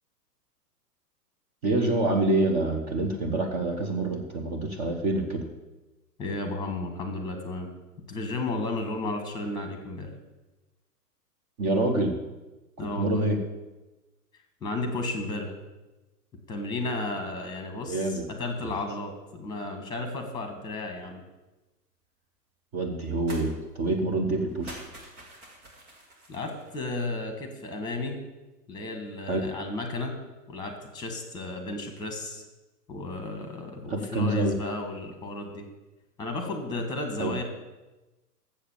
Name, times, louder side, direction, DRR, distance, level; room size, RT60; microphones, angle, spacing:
voice 1, 1.6-5.5 11.6-12.1 12.8-13.4 17.9-18.3 22.7-24.8 29.3-29.5 33.9-34.5 37.2-37.3, right 2 dB, 25° right, 2 dB, 0.7 m, -26 dB
voice 2, 6.2-7.7 8.1-10.1 12.8-13.3 14.6-15.5 16.5-21.2 26.3-28.2 28.7-30.2 30.5-32.4 32.9-35.7 36.2-37.4, left 2 dB, 10° left, 5 dB, 1.4 m, -33 dB
sound 1, 23.3-23.5 23.8-23.9 24.5-26.8, right 2 dB, 65° right, 2.5 m, -46 dB
7.4 x 6.6 x 7.2 m, 1.1 s
figure-of-eight pair, 110°, 48 cm